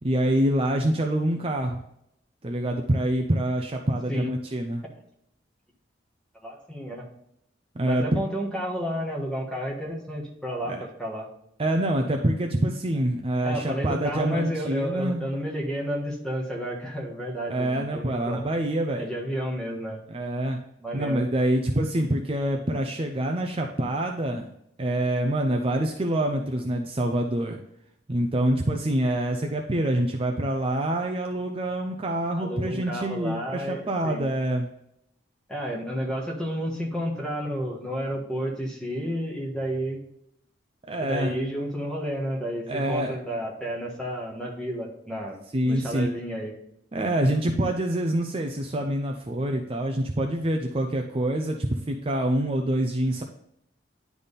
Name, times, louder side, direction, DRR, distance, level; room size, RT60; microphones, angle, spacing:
voice 1, 0.0-1.8 2.4-4.8 7.7-8.2 10.7-10.8 11.6-15.2 17.5-19.0 20.1-20.6 20.9-24.5 24.8-27.6 28.1-34.7 40.9-41.3 42.7-43.2 45.5-46.1 46.9-53.2, right 1 dB, 30° right, 3 dB, 0.5 m, -26 dB
voice 2, 6.4-7.1 7.8-11.3 13.4-18.5 19.0-20.0 20.8-21.2 32.4-34.3 35.5-40.0 41.0-45.4 45.6-46.5, equal, 5° left, -2 dB, 1.4 m, -31 dB
10.0 x 3.6 x 4.1 m, 0.77 s
head